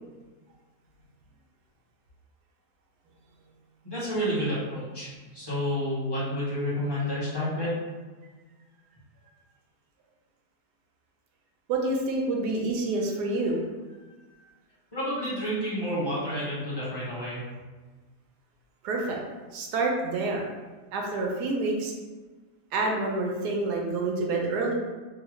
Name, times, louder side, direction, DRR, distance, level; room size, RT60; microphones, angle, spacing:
voice 1, 3.8-7.7 14.9-17.4, equal, 15° left, -9 dB, 1.0 m, -30 dB
voice 2, 11.7-13.6 18.8-19.2 19.5-20.4 20.9-21.9 22.7-24.7, right 2 dB, 75° right, 0 dB, 1.1 m, -27 dB
3.8 x 2.2 x 3.1 m, 1.3 s
omnidirectional pair, 1.8 m